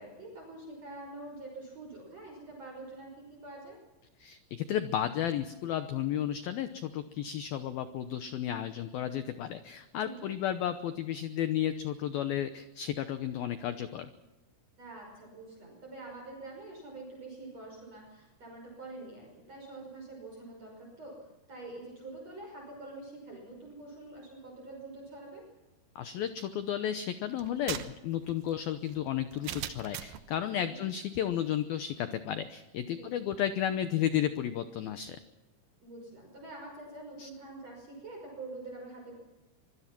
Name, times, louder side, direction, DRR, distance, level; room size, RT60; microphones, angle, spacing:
voice 1, 0.0-3.8 10.0-10.3 14.8-21.2 21.5-25.5 30.6-30.8 32.9-33.1 35.8-39.1, right 2 dB, 35° right, -1 dB, 6.5 m, -46 dB
voice 2, 4.2-14.1 26.0-35.2 37.2-37.3, left 10 dB, 85° left, 10 dB, 2.1 m, -33 dB
sound 1, 27.4-30.3, right 11 dB, 70° right, 2.3 m, -40 dB
25.5 x 22.0 x 6.1 m, 1.1 s
omnidirectional pair, 5.6 m